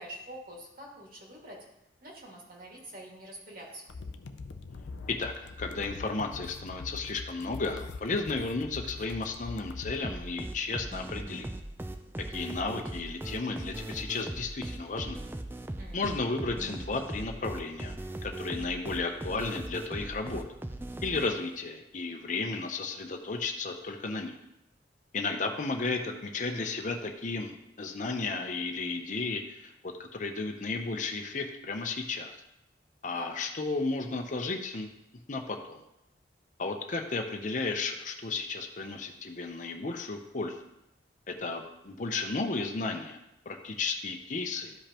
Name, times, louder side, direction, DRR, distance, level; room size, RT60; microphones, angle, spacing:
voice 1, 0.0-1.6 2.0-3.9 15.8-16.0 33.1-33.4, right 1 dB, 50° right, -2 dB, 2.1 m, -46 dB
sound 1, 3.9-10.0, left 3 dB, 80° left, 0.5 m, -43 dB
voice 2, 5.1-11.5 12.3-15.2 15.9-18.0 18.2-20.4 21.0-24.4 25.1-32.4 33.0-34.9 35.3-35.8 36.6-40.6 41.3-43.2 43.5-44.8, left 3 dB, 45° left, 3 dB, 0.7 m, -33 dB
sound 2, 10.0-21.6, right 1 dB, 10° right, 0.4 m, -39 dB
13.0 x 5.1 x 2.9 m, 0.87 s
head